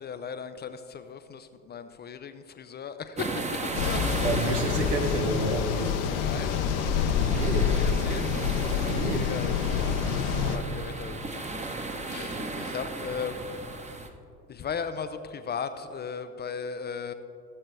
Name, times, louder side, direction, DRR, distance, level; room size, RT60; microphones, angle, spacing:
voice 1, 0.0-3.3 3.6-4.3 6.2-8.3 9.1-9.9 10.2-11.5 12.1-13.4 14.5-17.1, left 6 dB, 25° left, 10 dB, 0.4 m, -37 dB
sound 1, 3.2-14.1, right 2 dB, 15° right, 0.9 m, -36 dB
sound 2, 3.7-10.6, left 7 dB, 65° left, 0.9 m, -27 dB
voice 2, 4.2-6.0 6.8-6.9 7.3-7.7 8.3-9.3, right 2 dB, 80° right, 4 dB, 1.2 m, -30 dB
18.0 x 7.4 x 3.3 m, 2.6 s
figure-of-eight pair, 65°, 47 cm